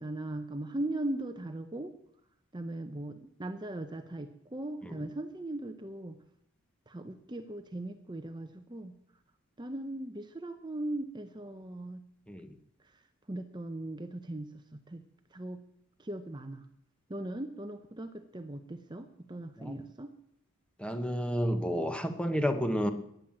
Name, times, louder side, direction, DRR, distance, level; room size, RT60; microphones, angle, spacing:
voice 1, 0.0-1.9 2.5-6.2 6.9-9.0 9.6-12.0 12.8-13.0 13.3-15.0 15.3-15.6 16.0-16.7 17.1-20.1, right 1 dB, 20° right, 8 dB, 0.8 m, -39 dB
voice 2, 20.8-22.9, equal, 5° left, 8 dB, 1.1 m, -31 dB
15.0 x 10.5 x 7.4 m, 0.75 s
head